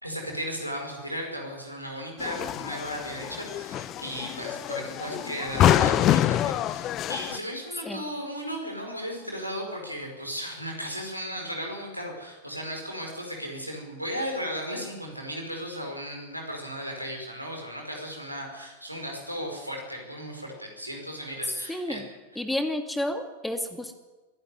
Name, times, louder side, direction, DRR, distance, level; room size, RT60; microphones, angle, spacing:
voice 1, 0.0-22.0, equal, 90° right, 1 dB, 5.2 m, -35 dB
sound 1, 2.2-7.4, left 12 dB, 35° left, 0.8 m, -26 dB
voice 2, 21.7-22.0 22.4-23.9, left 1 dB, 5° left, 7 dB, 2.4 m, -30 dB
23.0 x 12.0 x 10.0 m, 1.2 s
figure-of-eight pair, 90°, 0 cm